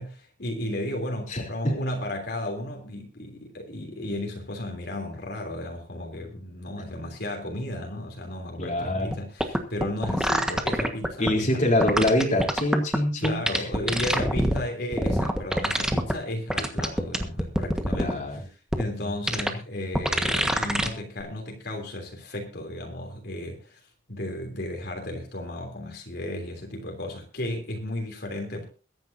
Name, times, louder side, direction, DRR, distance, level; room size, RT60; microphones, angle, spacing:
voice 1, 0.0-11.6 13.2-23.8 24.1-28.7, left 1 dB, 60° left, 2 dB, 3.2 m, -34 dB
voice 2, 1.3-1.8 8.6-9.1 11.2-13.7 18.0-18.4 19.0-19.1, left 1 dB, 40° left, 0 dB, 3.5 m, -25 dB
sound 1, 9.1-9.2 9.4-11.3 11.8-13.0 13.2-14.6 14.9-16.1 16.5-18.1 18.7-18.8 19.3-19.5 19.9-20.9 21.2-21.3, equal, 5° right, 1.4 m, -24 dB
22.5 x 10.5 x 2.7 m, 0.35 s
head